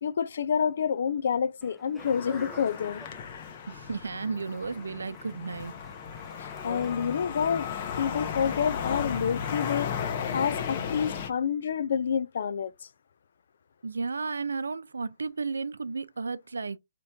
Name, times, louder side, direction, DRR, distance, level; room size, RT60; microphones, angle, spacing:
voice 1, 0.0-3.0 6.4-7.7 8.0-10.0 10.3-12.7, left 7 dB, 65° left, 0.5 m, -28 dB
Speech, 1.6-7.4, equal, ahead, 0.3 m, -51 dB
sound 1, 2.0-11.3, left 7 dB, 40° left, 0.8 m, -35 dB
voice 2, 3.7-5.7 13.8-16.8, right 4 dB, 90° right, 0.5 m, -33 dB
4.3 x 3.0 x 3.4 m
hypercardioid pair, 150°, 0 cm